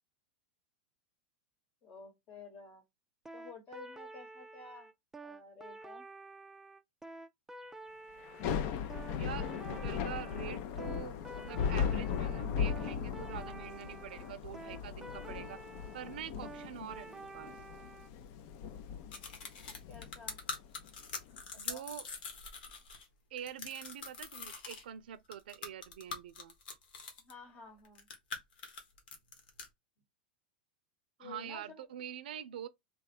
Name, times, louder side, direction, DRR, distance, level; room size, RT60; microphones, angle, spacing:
voice 1, 1.8-2.8 3.3-4.9 5.2-6.1 19.7-20.4 21.5-21.9 27.2-28.1 31.2-31.9, left 4 dB, 35° left, 1.1 m, -52 dB
sound 1, 3.2-18.1, right 2 dB, 5° right, 0.3 m, -50 dB
Thunder / Rain, 8.2-21.4, left 7 dB, 55° left, 0.5 m, -38 dB
voice 2, 9.1-15.6 15.9-17.6 21.6-22.1 23.3-26.5 31.2-32.7, right 10 dB, 80° right, 0.5 m, -45 dB
sound 2, 19.1-23.1 23.4-24.8 25.3-27.3 27.8-29.7, left 4 dB, 75° left, 1.3 m, -44 dB
3.4 x 2.3 x 4.1 m
hypercardioid pair, 125°, 5 cm